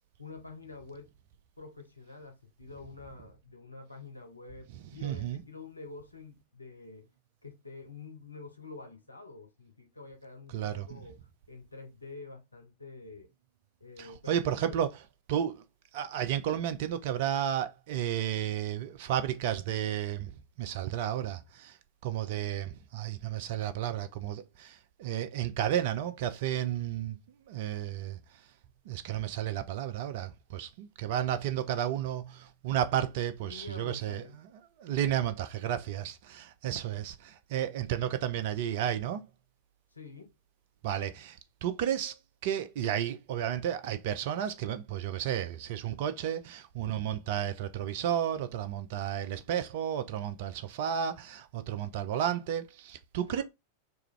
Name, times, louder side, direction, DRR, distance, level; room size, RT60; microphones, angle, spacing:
voice 1, 0.2-1.1 1.6-7.1 7.4-11.2 11.5-13.3 13.8-14.8 33.4-34.4 39.9-40.3 53.2-53.4, left 3 dB, 85° left, 0.6 m, -47 dB
voice 2, 5.0-5.4 10.5-11.0 14.0-14.9 15.3-15.6 15.9-20.3 20.6-21.8 22.0-27.2 27.5-28.2 28.9-34.5 34.8-39.2 40.8-42.2 42.4-53.4, right 10 dB, 50° right, 0.4 m, -32 dB
2.4 x 2.3 x 3.0 m
figure-of-eight pair, 90°, 0 cm